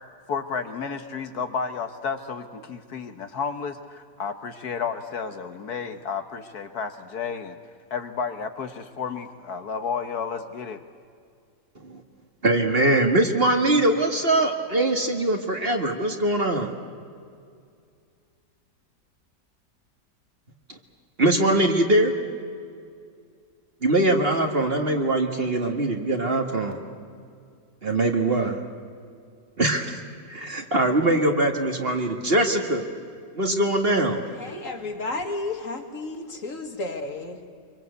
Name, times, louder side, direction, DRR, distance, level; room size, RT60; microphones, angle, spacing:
voice 1, 0.3-7.6 7.9-10.8, left 6 dB, 65° left, 8 dB, 1.6 m, -32 dB
voice 2, 12.4-16.8 20.7-20.8 21.2-22.1 23.8-26.8 27.8-28.6 29.6-30.0 30.3-32.8 33.4-34.2, right 1 dB, 35° right, 4 dB, 2.0 m, -22 dB
voice 3, 34.4-37.5, left 2 dB, 50° left, 5 dB, 2.4 m, -32 dB
25.0 x 24.0 x 8.2 m, 2.3 s
omnidirectional pair, 1.8 m